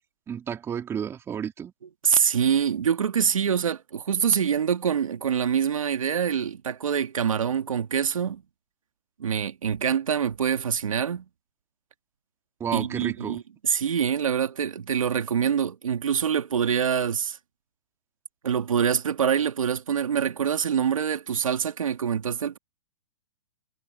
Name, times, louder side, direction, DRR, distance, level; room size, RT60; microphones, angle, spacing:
voice 1, 0.3-1.7 12.6-13.4, right 8 dB, 15° right, 2.9 m, -31 dB
voice 2, 2.0-8.4 9.2-11.2 12.7-17.4 18.4-22.6, right 8 dB, 85° right, 1.7 m, -25 dB
hypercardioid pair, 145°, 17 cm